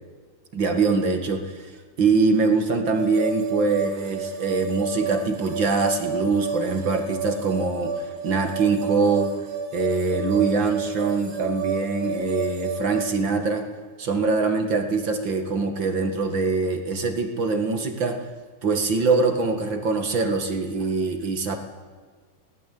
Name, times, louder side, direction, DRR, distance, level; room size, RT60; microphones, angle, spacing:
voice 1, 0.5-1.7 2.0-7.9 8.2-9.3 9.7-13.7 14.0-18.2 18.6-21.6, right 4 dB, 40° right, 6 dB, 2.2 m, -23 dB
sound 1, 3.0-13.0, right 4 dB, 85° right, 4.1 m, -30 dB
20.5 x 18.5 x 8.6 m, 1.5 s
omnidirectional pair, 3.9 m